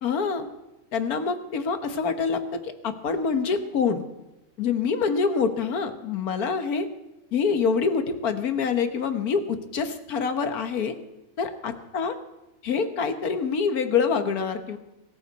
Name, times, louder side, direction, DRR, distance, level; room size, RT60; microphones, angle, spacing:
voice 1, 0.0-0.5 0.9-4.1 4.6-6.9 7.3-10.9 11.4-12.2 12.6-14.8, left 5 dB, 75° left, 8 dB, 1.7 m, -26 dB
23.5 x 14.0 x 4.1 m, 0.98 s
omnidirectional pair, 1.6 m